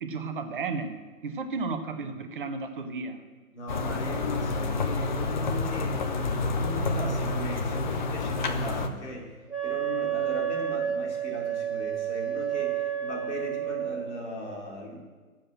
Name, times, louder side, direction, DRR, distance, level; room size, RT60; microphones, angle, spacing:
voice 1, 0.0-3.2, right 4 dB, 35° right, 8 dB, 1.1 m, -33 dB
voice 2, 3.5-15.0, left 2 dB, 50° left, -1 dB, 3.7 m, -38 dB
sound 1, 3.7-8.9, left 3 dB, 30° left, 0.9 m, -29 dB
Wind instrument woodwind instrument, 9.5-14.0, right 10 dB, ahead, 1.0 m, -30 dB
13.0 x 7.6 x 7.5 m, 1.4 s
figure-of-eight pair, 135°, 44 cm